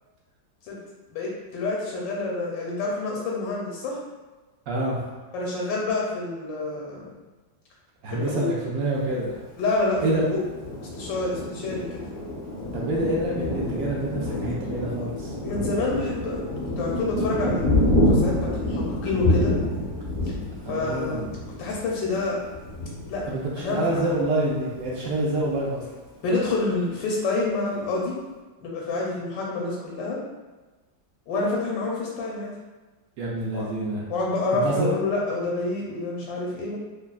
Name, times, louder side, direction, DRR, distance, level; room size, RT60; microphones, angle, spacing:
voice 1, 1.1-4.0 5.3-7.1 8.1-8.5 9.6-10.0 10.3-10.4 10.9-12.0 15.4-16.5 16.8-17.6 18.1-19.6 20.2-20.3 20.7-21.2 21.6-22.4 23.1-23.2 23.6-24.0 26.2-28.2 28.6-30.2 31.3-32.5 33.5-33.7 34.1-36.8, left 2 dB, 85° left, -3 dB, 1.3 m, -28 dB
voice 2, 4.7-5.0 8.0-9.4 10.0-10.2 12.7-15.3 20.6-21.3 23.3-25.8 33.2-34.0 34.6-34.9, right 1 dB, 75° right, -4 dB, 0.7 m, -27 dB
Thunder, 9.9-24.3 24.7-24.9 25.2-25.8, left 1 dB, 20° right, 0.9 m, -27 dB
3.3 x 2.3 x 2.3 m, 1.2 s
omnidirectional pair, 2.0 m